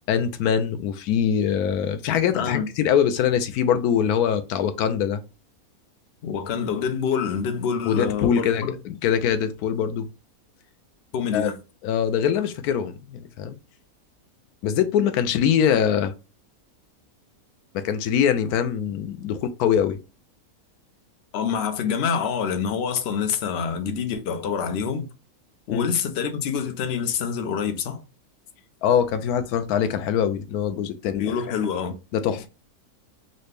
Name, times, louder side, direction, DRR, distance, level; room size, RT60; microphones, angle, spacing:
voice 1, 0.1-5.2 7.9-10.1 11.3-11.5 11.8-13.6 14.6-16.1 17.7-20.0 25.7-25.9 28.8-31.3 32.1-32.5, left 8 dB, 80° left, 1.1 m, -23 dB
voice 2, 2.3-2.7 6.2-8.8 11.1-11.6 21.3-25.1 25.7-28.0 31.2-32.0, left 7 dB, 60° left, 0.7 m, -26 dB
4.1 x 2.1 x 3.2 m
omnidirectional pair, 1.6 m